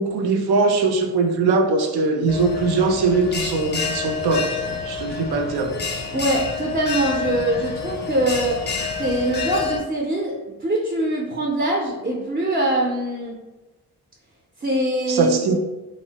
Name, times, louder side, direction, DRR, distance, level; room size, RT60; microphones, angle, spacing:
voice 1, 0.0-4.5 4.9-5.8 15.1-15.6, right 3 dB, 80° right, 3 dB, 0.5 m, -21 dB
Bell, 2.3-9.8, left 5 dB, 30° left, 0.4 m, -28 dB
voice 2, 6.1-8.6 9.0-13.4 14.6-15.6, right 1 dB, 25° right, -2 dB, 0.5 m, -23 dB
3.0 x 2.0 x 2.8 m, 1.1 s
cardioid pair, 70°, 38 cm